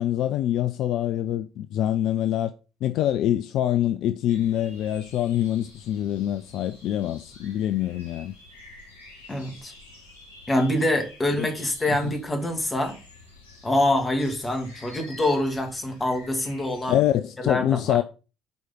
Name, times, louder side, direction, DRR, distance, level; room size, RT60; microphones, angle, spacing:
voice 1, 0.0-2.5 2.8-8.3 11.4-11.5 16.9-18.0, left 11 dB, 60° left, 0.4 m, -25 dB
sound 1, 4.3-17.2, left 2 dB, 80° left, 2.6 m, -49 dB
voice 2, 9.3-9.7 10.5-13.0 13.6-17.0 17.4-18.0, left 1 dB, 20° left, 2.6 m, -25 dB
7.9 x 4.8 x 5.7 m
figure-of-eight pair, 50°, 0 cm